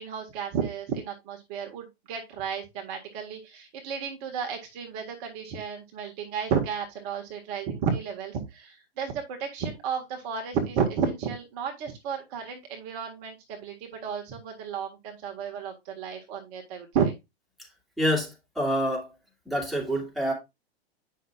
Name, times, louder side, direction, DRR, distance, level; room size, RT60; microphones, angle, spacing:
voice 1, 0.0-17.1, right 6 dB, 40° right, 1.7 m, -32 dB
voice 2, 18.0-19.1 19.5-20.3, equal, ahead, 2.6 m, -27 dB
9.2 x 5.7 x 2.4 m
figure-of-eight pair, 110°, 32 cm